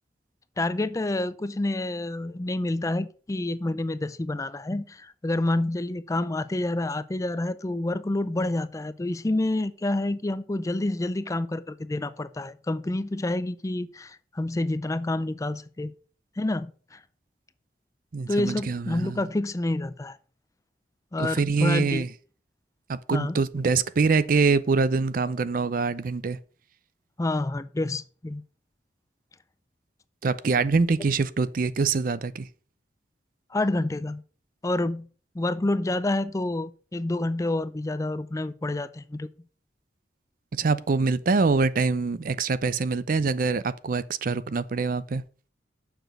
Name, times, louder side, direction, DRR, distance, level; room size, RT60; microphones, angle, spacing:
voice 1, 0.6-15.9 16.4-17.0 18.3-20.2 21.1-22.0 23.1-23.4 27.2-28.4 33.5-34.2 34.6-35.1 35.3-39.3, left 2 dB, 20° left, 0.4 m, -28 dB
voice 2, 18.1-19.3 21.2-22.1 22.9-26.4 30.2-32.5 40.5-45.2, right 4 dB, 50° right, 0.5 m, -24 dB
7.1 x 5.9 x 6.5 m
head